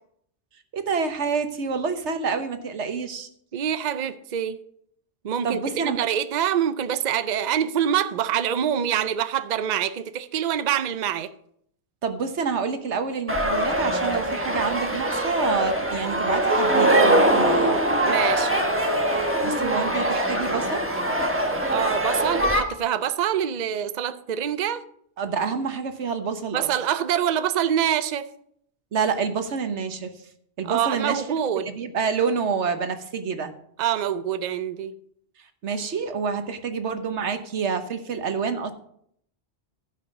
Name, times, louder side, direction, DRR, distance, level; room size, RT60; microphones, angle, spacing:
voice 1, 0.7-3.3 5.4-6.0 12.0-17.8 19.4-20.8 25.2-26.7 28.9-30.2 30.6-31.2 31.5-33.5 35.6-38.7, right 5 dB, 85° right, 1.4 m, -27 dB
voice 2, 3.5-4.6 5.2-11.3 18.0-18.7 21.7-24.8 26.5-28.3 30.6-31.7 33.8-34.9, right 9 dB, 50° right, 0.6 m, -25 dB
sound 1, 13.3-22.6, right 1 dB, 10° right, 1.2 m, -22 dB
14.5 x 5.7 x 5.2 m
omnidirectional pair, 1.2 m